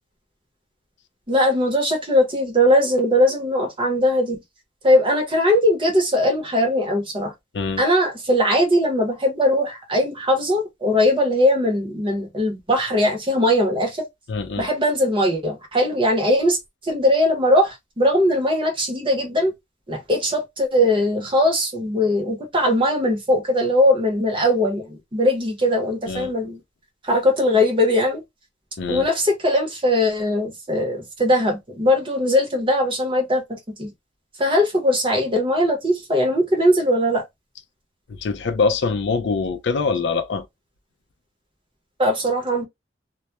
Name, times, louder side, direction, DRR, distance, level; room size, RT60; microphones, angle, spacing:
voice 1, 1.3-4.4 4.8-7.3 7.8-14.0 14.6-16.6 16.8-19.5 19.9-26.6 27.1-28.2 28.9-33.4 33.8-33.9 34.4-37.2 42.0-42.7, left 1 dB, 30° right, 0.8 m, -20 dB
voice 2, 14.3-14.7 26.1-26.3 28.8-29.1 38.1-40.4, left 4 dB, 70° left, 0.4 m, -24 dB
2.2 x 2.1 x 2.8 m
head